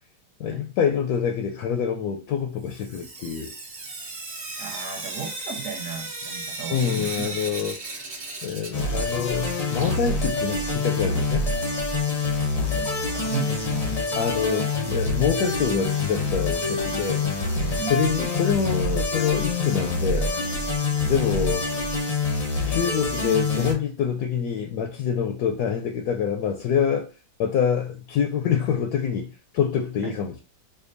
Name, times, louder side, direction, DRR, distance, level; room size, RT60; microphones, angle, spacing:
voice 1, 0.4-3.5 6.7-7.8 8.4-11.5 14.2-17.5 17.9-20.3 21.0-21.7 22.7-27.1 27.4-30.4, left 7 dB, 75° left, 0.9 m, -26 dB
Sink (filling or washing) / Drip, 2.7-9.4 9.7-11.6 12.8-12.9 13.2-13.3 13.5-13.6 16.5-16.6 17.2-17.3 17.8-17.9 18.5-18.6 19.2-19.3 20.2-20.3, right 3 dB, 40° right, 1.2 m, -37 dB
voice 2, 4.6-7.7 12.5-14.0 17.8-18.2 20.8-21.1 30.0-30.2, right 8 dB, 60° right, 0.8 m, -36 dB
sound 1, 8.7-23.7, left 3 dB, 55° left, 0.4 m, -26 dB
5.2 x 2.2 x 2.5 m
omnidirectional pair, 2.1 m